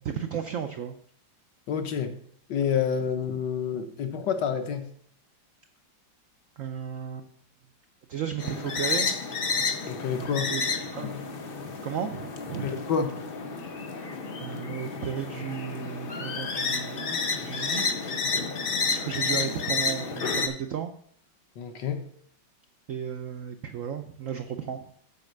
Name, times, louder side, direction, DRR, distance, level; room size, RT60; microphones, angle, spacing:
voice 1, 0.0-1.0 6.6-7.3 8.1-9.1 10.3-11.3 11.8-12.7 14.4-18.0 18.3-18.4 18.9-20.9 22.9-24.9, right 8 dB, 75° right, 7 dB, 0.7 m, -34 dB
voice 2, 1.7-2.1 2.5-4.9 9.9-10.5 11.0-11.1 12.6-13.2 21.6-22.0, left 7 dB, 65° left, 7 dB, 1.6 m, -28 dB
sound 1, 8.4-20.5, left 4 dB, 50° left, 0.7 m, -30 dB
8.2 x 5.2 x 6.5 m, 0.64 s
omnidirectional pair, 2.1 m